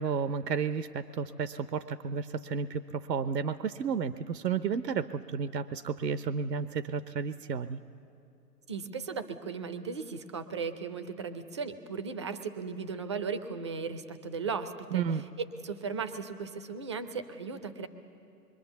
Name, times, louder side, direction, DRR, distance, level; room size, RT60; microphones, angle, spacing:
voice 1, 0.0-7.8 14.9-15.2, right 6 dB, 75° right, 13 dB, 0.8 m, -32 dB
voice 2, 8.7-15.0 15.6-17.9, right 5 dB, 20° right, 11 dB, 0.5 m, -36 dB
25.5 x 23.0 x 7.0 m, 2.7 s
hypercardioid pair, 135°, 50 cm